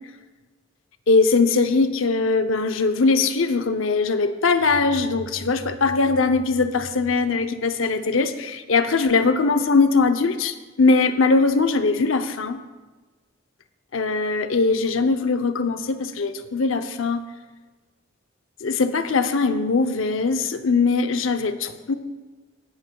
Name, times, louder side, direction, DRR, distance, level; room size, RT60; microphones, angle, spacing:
voice 1, 1.1-12.6 13.9-17.2 18.6-21.9, left 4 dB, 75° left, 8 dB, 0.7 m, -21 dB
sound 1, 4.6-7.8, right 1 dB, 20° left, 3.7 m, -41 dB
17.5 x 9.6 x 2.3 m, 1.3 s
head